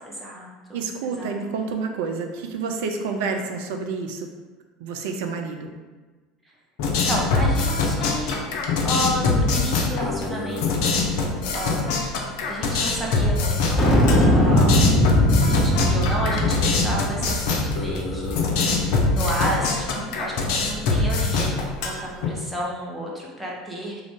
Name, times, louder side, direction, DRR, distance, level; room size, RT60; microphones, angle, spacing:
voice 1, 0.0-1.3 6.9-8.4 8.8-10.9 11.5-12.1 12.5-13.9 14.3-14.9 15.4-18.8 19.1-24.0, equal, ahead, -4 dB, 0.8 m, -31 dB
voice 2, 0.7-4.3 4.8-5.7, right 4 dB, 60° right, 4 dB, 0.4 m, -29 dB
sound 1, 6.8-22.3, left 3 dB, 55° left, 0.5 m, -24 dB
sound 2, 13.8-18.4, equal, 30° left, 1.1 m, -20 dB
3.4 x 2.5 x 3.5 m, 1.3 s
figure-of-eight pair, 70°, 0 cm